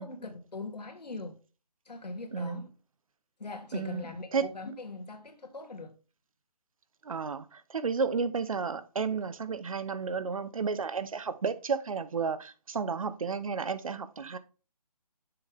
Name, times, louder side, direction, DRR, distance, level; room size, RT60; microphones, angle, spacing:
voice 1, 0.0-1.4 1.9-2.7 3.4-5.9, left 3 dB, 85° left, 2.0 m, -41 dB
voice 2, 2.3-2.6 3.7-4.1 4.3-4.5 7.0-14.4, right 5 dB, 55° right, 0.9 m, -32 dB
6.9 x 5.7 x 3.5 m
hypercardioid pair, 165°, 20 cm